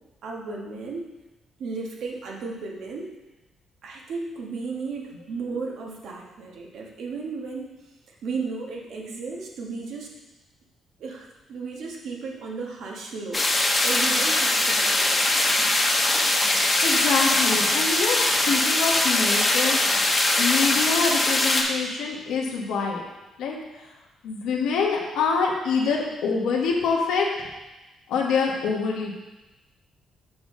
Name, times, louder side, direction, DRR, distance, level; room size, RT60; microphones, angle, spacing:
voice 1, 0.2-1.0 1.6-3.1 3.8-7.7 8.1-10.1 11.0-15.2, right 4 dB, 75° right, -1 dB, 1.3 m, -34 dB
sound 1, 13.3-21.6, left 2 dB, 25° left, 1.1 m, -21 dB
voice 2, 16.8-19.9 20.4-23.0 23.4-23.6 24.2-27.3 28.1-29.1, left 5 dB, 90° left, -1 dB, 1.2 m, -25 dB
6.9 x 5.4 x 3.7 m, 1.1 s
cardioid pair, 90°, 0 cm